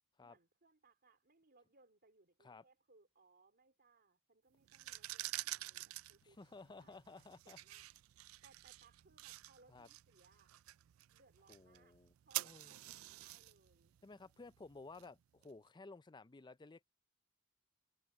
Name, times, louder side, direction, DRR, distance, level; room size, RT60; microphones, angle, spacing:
voice 1, 0.2-6.4 6.7-7.0 7.4-7.9 8.4-10.5 11.1-12.0 12.3-13.9, right 3 dB, 50° right, 3.5 m, -69 dB
sound 1, 4.6-15.5, right 17 dB, 80° right, 0.4 m, -49 dB
voice 2, 6.2-7.6 9.7-9.9 11.5-12.1 12.4-12.8 14.0-16.8, left 3 dB, 20° left, 0.5 m, -55 dB
head